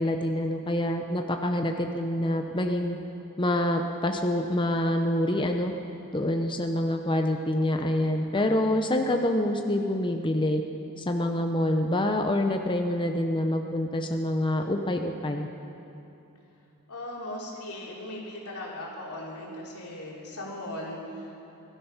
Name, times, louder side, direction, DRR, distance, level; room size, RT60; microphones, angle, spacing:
voice 1, 0.0-3.0 3.4-5.7 6.1-10.6 11.0-15.5, left 1 dB, 20° left, 4 dB, 0.7 m, -26 dB
voice 2, 16.9-21.4, left 1 dB, 85° left, -3 dB, 3.4 m, -38 dB
20.0 x 12.5 x 5.7 m, 2.8 s
head